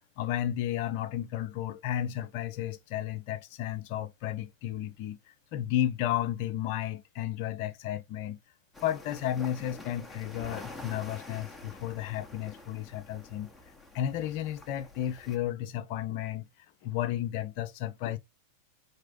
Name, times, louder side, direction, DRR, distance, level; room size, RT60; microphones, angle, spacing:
voice 1, 0.2-5.2 5.5-8.4 8.8-13.5 13.9-16.5 16.8-18.2, left 12 dB, 45° left, 0.9 m, -33 dB
sound 1, 8.7-15.4, left 2 dB, 5° left, 1.5 m, -47 dB
4.7 x 4.4 x 5.0 m
figure-of-eight pair, 90°, 0 cm